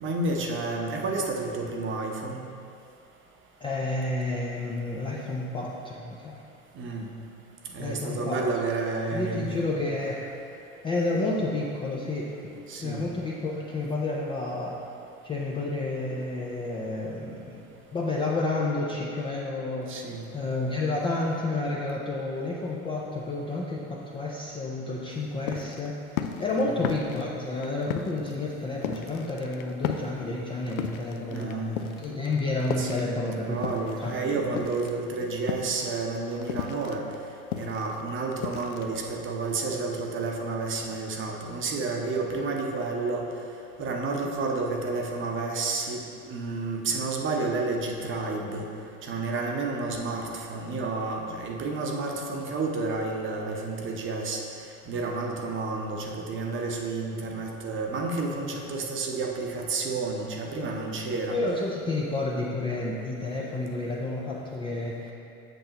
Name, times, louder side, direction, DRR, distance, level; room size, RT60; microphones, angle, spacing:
voice 1, 0.0-2.4 6.7-7.1 7.7-9.6 12.7-13.0 19.9-20.3 26.6-26.8 31.3-31.8 32.8-37.0 37.5-43.3 43.8-46.0 46.3-48.6 49.0-54.4 54.9-61.4, right 3 dB, 30° right, 1 dB, 0.8 m, -30 dB
voice 2, 3.6-6.4 7.8-8.4 9.1-10.2 10.8-12.5 12.8-14.8 15.2-17.6 17.9-19.9 20.3-26.0 26.4-34.7 61.3-65.1, left 2 dB, 15° left, -4 dB, 0.4 m, -30 dB
sound 1, 25.1-34.2 34.4-39.4, left 9 dB, 75° left, 0.6 m, -35 dB
8.0 x 6.5 x 2.9 m, 2.5 s
hypercardioid pair, 105°, 43 cm